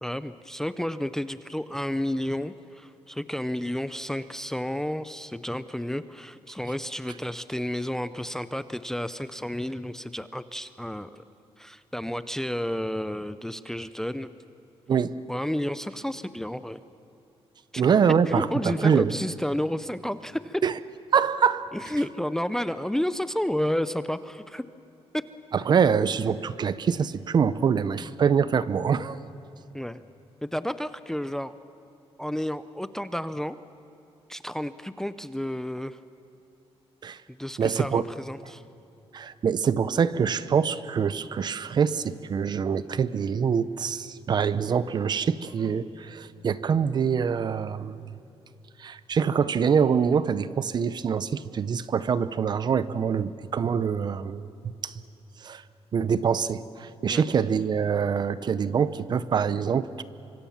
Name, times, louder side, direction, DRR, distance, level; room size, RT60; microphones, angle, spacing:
voice 1, 0.0-11.2 11.6-14.3 15.3-16.8 17.7-17.8 18.3-20.6 21.7-24.6 29.7-30.0 30.4-31.5 32.2-33.6 34.3-36.0 37.3-38.6 57.1-57.2, left 1 dB, 5° left, 13 dB, 0.5 m, -31 dB
voice 2, 17.8-19.1 20.6-20.8 21.1-21.7 25.5-29.2 37.0-37.2 37.6-38.1 39.1-48.1 48.8-55.0 55.4-55.6 55.9-60.0, right 6 dB, 40° right, 15 dB, 0.7 m, -25 dB
25.5 x 25.0 x 7.2 m, 2.8 s
wide cardioid pair, 160°, 11 cm